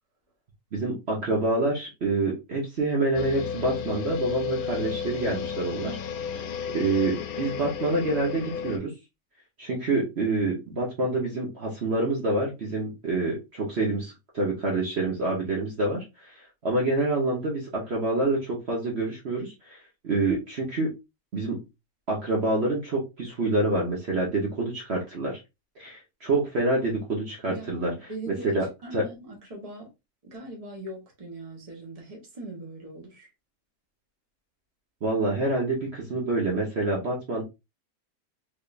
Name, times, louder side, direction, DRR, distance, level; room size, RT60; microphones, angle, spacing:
voice 1, 0.7-6.0 6.7-8.9 9.6-16.3 16.6-19.8 20.0-20.9 21.3-21.6 22.1-25.4 25.8-28.7 28.9-29.0 35.0-37.4, right 2 dB, 50° right, 1.3 m, -27 dB
sound 1, 3.1-8.8, left 7 dB, 85° left, 1.1 m, -33 dB
voice 2, 27.5-28.5 28.8-29.9 30.2-33.3, right 1 dB, 25° right, 1.3 m, -41 dB
3.5 x 3.4 x 2.5 m
omnidirectional pair, 1.5 m